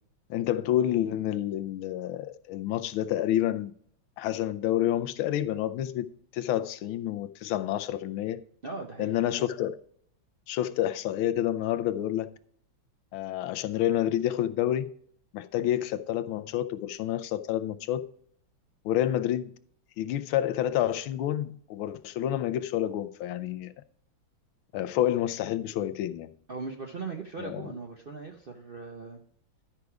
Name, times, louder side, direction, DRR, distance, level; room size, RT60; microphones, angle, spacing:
voice 1, 0.3-3.7 4.2-8.4 9.0-9.8 10.5-12.3 13.1-14.9 15.3-18.0 18.8-19.5 20.0-23.7 24.7-26.3 27.4-27.7, left 12 dB, 90° left, 1.4 m, -29 dB
voice 2, 8.6-9.3 26.5-29.2, right 4 dB, 65° right, 0.5 m, -39 dB
12.0 x 4.9 x 4.7 m
omnidirectional pair, 2.2 m